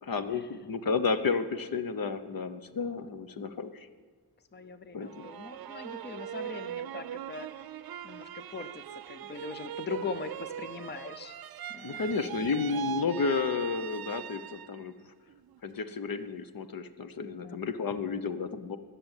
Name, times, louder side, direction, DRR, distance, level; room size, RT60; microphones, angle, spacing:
voice 1, 0.0-3.9 4.9-5.3 11.8-15.0 15.6-18.8, left 5 dB, 65° left, 10 dB, 0.9 m, -32 dB
voice 2, 4.5-7.5 8.0-11.3 11.7-12.0 17.2-17.6, left 5 dB, 30° left, 10 dB, 0.7 m, -41 dB
sound 1, 5.1-14.9 15.3-16.0, right 11 dB, 75° right, 0.5 m, -41 dB
20.5 x 7.0 x 9.0 m, 1.5 s
wide cardioid pair, 180°, 37 cm